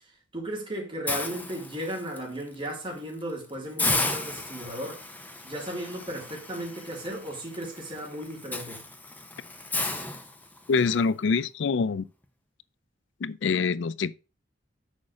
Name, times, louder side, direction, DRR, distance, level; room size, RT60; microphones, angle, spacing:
voice 1, 0.3-5.0 5.4-8.8, right 1 dB, 30° right, 3.7 m, -35 dB
Hiss, 1.1-2.2 2.7-2.9 3.2-3.3 3.8-10.9, left 2 dB, 10° left, 0.9 m, -34 dB
voice 2, 10.7-12.1 13.2-14.2, left 5 dB, 70° left, 0.4 m, -25 dB
6.5 x 4.8 x 6.2 m
head